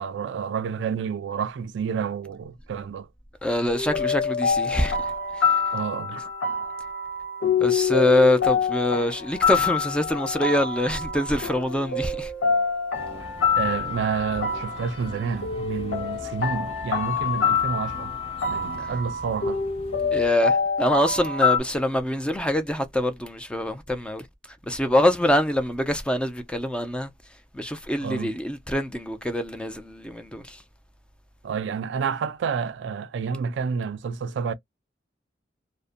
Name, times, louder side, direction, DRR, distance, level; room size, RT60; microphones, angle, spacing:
voice 1, 0.0-3.1 5.7-6.3 13.5-18.1 18.5-19.6 28.0-28.3 31.4-34.5, right 6 dB, 65° right, 0.3 m, -29 dB
voice 2, 3.4-5.0 5.4-5.5 7.6-12.3 20.1-24.2 24.7-27.1 27.5-30.6, left 1 dB, 5° left, 0.4 m, -24 dB
sound 1, 3.7-21.6, left 5 dB, 85° left, 0.8 m, -26 dB
sound 2, 12.9-20.3, left 2 dB, 30° left, 0.7 m, -41 dB
2.5 x 2.0 x 2.4 m
head